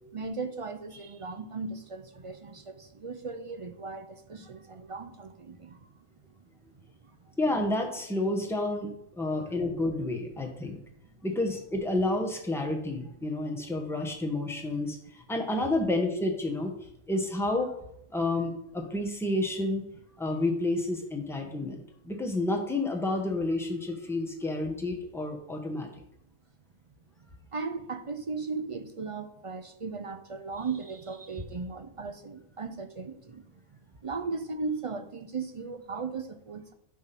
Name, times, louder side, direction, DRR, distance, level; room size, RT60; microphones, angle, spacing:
voice 1, 0.1-7.3 9.4-9.6 21.4-21.6 27.5-33.4 34.0-36.7, right 4 dB, 50° right, 8 dB, 0.4 m, -37 dB
voice 2, 7.4-10.8 11.2-16.7 17.1-17.7 18.1-19.8 20.2-25.9, left 2 dB, ahead, 2 dB, 1.1 m, -30 dB
10.5 x 3.7 x 5.8 m, 0.75 s
omnidirectional pair, 1.4 m